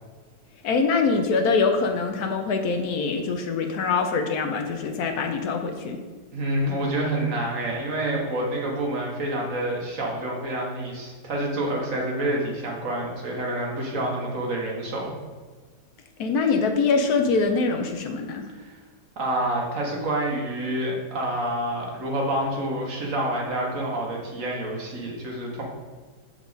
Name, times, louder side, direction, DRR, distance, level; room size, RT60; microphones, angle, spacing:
voice 1, 0.6-6.0 16.2-18.5, left 4 dB, 70° left, 5 dB, 1.1 m, -24 dB
voice 2, 6.3-15.2 18.6-18.7 19.2-25.6, right 1 dB, 55° right, -2 dB, 1.4 m, -28 dB
7.2 x 4.6 x 3.9 m, 1.4 s
omnidirectional pair, 1.8 m